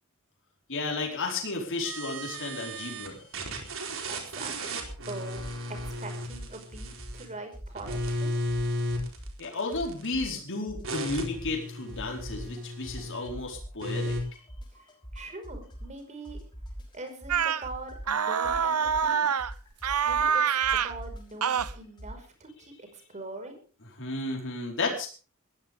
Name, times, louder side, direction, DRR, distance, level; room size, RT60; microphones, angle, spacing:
voice 1, 0.7-3.2 9.4-14.2 24.0-25.1, left 3 dB, 60° left, 0 dB, 4.6 m, -33 dB
sound 1, 1.8-3.1 3.3-7.3 7.7-10.2 10.8-13.3 13.8-14.2, equal, 65° right, 4.2 m, -35 dB
voice 2, 4.1-4.8 5.1-8.3 14.7-16.4 16.9-19.4 20.0-23.6, right 2 dB, 35° right, 6 dB, 5.4 m, -43 dB
sound 2, 4.8-5.1 5.3-7.3 7.5-9.5 9.7-11.6 11.9-22.2, equal, 20° left, 5.7 m, -42 dB
sound 3, 17.3-17.6 18.1-19.5 19.8-20.9 21.4-21.7, right 7 dB, 85° right, 0.9 m, -26 dB
20.5 x 15.5 x 3.6 m, 0.37 s
head